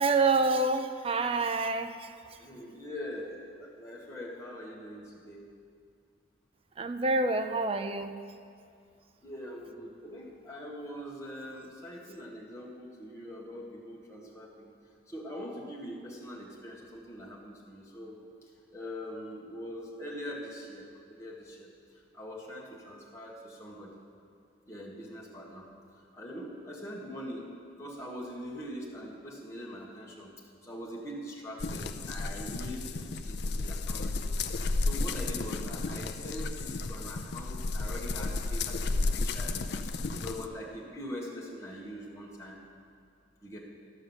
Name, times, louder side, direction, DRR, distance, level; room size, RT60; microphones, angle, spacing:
voice 1, 0.0-2.1 6.8-8.2, right 3 dB, 30° right, 8 dB, 0.4 m, -27 dB
voice 2, 2.4-5.4 9.2-14.7 15.1-18.2 18.7-21.7 22.1-23.9 24.7-25.6 26.1-27.5 27.8-30.3 30.6-39.6 39.9-42.6 43.4-43.6, equal, 15° left, -4 dB, 1.6 m, -43 dB
sound 1, 31.6-40.5, left 3 dB, 60° left, 0.5 m, -33 dB
13.5 x 5.3 x 7.1 m, 2.3 s
head